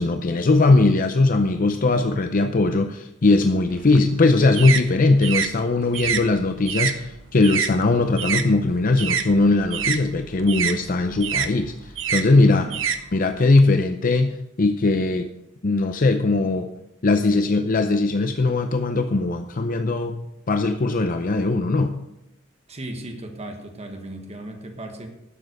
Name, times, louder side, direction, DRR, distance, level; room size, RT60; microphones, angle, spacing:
voice 1, 0.0-12.7 13.1-15.3 15.6-16.7 17.0-20.2 20.5-21.9, left 3 dB, 45° left, 7 dB, 0.6 m, -20 dB
sound 1, 3.7-8.5 8.8-13.6, right 7 dB, 70° right, 0.9 m, -27 dB
voice 2, 12.4-12.8 22.7-25.1, right 1 dB, 35° right, 4 dB, 1.5 m, -36 dB
12.0 x 7.4 x 6.5 m, 0.88 s
head